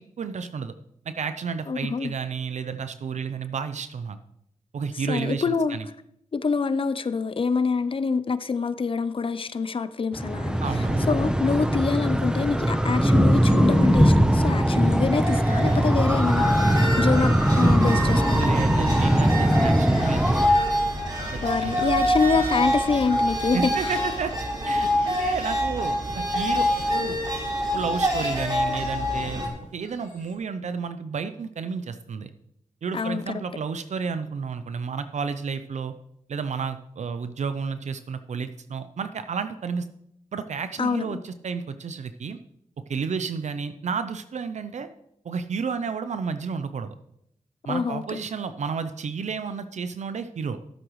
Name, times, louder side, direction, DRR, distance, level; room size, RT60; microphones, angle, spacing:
voice 1, 0.2-0.7 1.1-4.2 4.7-5.8 10.6-11.1 18.4-20.6 21.3-21.8 23.5-24.3 24.6-27.2 27.7-29.4 29.7-32.3 32.8-35.9 36.3-39.9 40.3-42.4 42.9-44.9 45.2-46.9 47.6-50.6, right 5 dB, 70° right, 0.6 m, -31 dB
voice 2, 1.7-2.1 5.1-5.8 6.3-10.6 11.1-18.7 21.4-23.9 32.9-33.4 40.8-41.2 47.7-48.2, left 4 dB, 45° left, 0.6 m, -26 dB
sound 1, 10.1-20.5, equal, 5° right, 0.9 m, -21 dB
sound 2, 14.6-29.5, equal, 35° right, 3.0 m, -26 dB
sound 3, 18.9-30.3, left 3 dB, 85° left, 2.2 m, -46 dB
14.0 x 7.8 x 3.1 m
cardioid pair, 60°, 13 cm